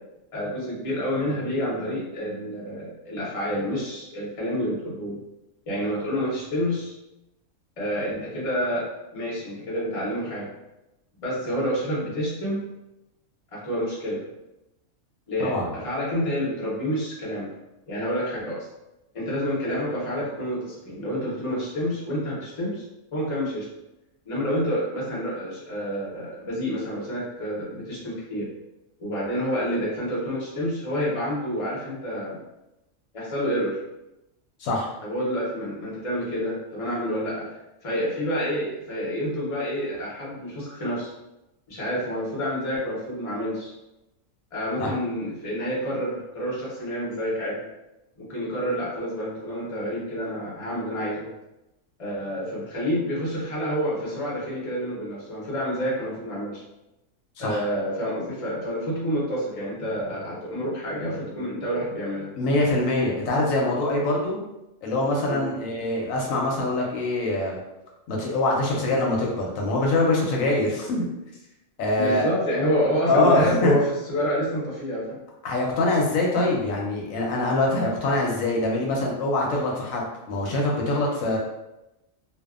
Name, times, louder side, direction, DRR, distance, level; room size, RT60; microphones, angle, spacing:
voice 1, 0.3-5.2 5.7-6.9 7.8-10.5 11.2-12.6 13.5-14.2 15.3-17.5 17.9-18.7 19.1-22.8 23.1-23.7 24.2-28.5 29.0-32.4 33.1-33.8 35.0-41.1 41.7-43.7 44.5-47.6 48.2-51.3 52.0-56.6 57.4-62.3 65.3-65.5 72.0-75.2, equal, 30° left, -7 dB, 0.8 m, -28 dB
voice 2, 62.3-64.4 64.8-67.6 68.1-71.0 71.8-72.3 73.1-73.8 75.4-81.4, left 2 dB, 85° left, -2 dB, 1.0 m, -24 dB
2.6 x 2.2 x 2.4 m, 0.95 s
omnidirectional pair, 1.4 m